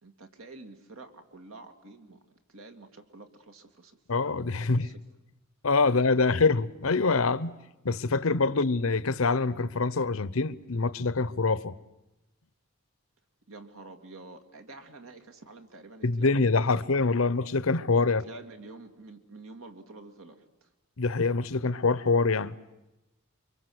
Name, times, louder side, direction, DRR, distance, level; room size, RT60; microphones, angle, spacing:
voice 1, 0.0-2.2 2.5-4.0 4.6-4.9 5.8-6.4 8.5-8.6 13.5-17.3 18.2-20.7, right 2 dB, 75° right, 2.5 m, -48 dB
voice 2, 4.1-4.9 5.6-7.6 7.8-11.7 16.0-18.2 21.0-22.5, left 3 dB, 75° left, 0.8 m, -25 dB
28.5 x 24.0 x 8.0 m
head